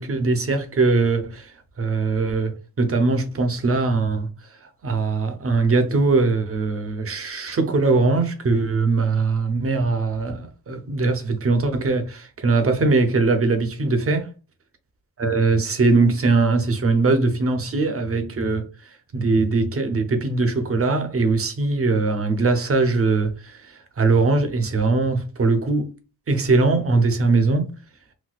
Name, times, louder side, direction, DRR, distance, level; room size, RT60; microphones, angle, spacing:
voice 1, 0.0-1.5 1.8-4.3 4.8-14.3 15.2-18.7 19.1-25.9 26.3-27.7, right 3 dB, 35° right, 0.7 m, -21 dB
4.1 x 2.2 x 2.3 m
cardioid pair, 90°, 39 cm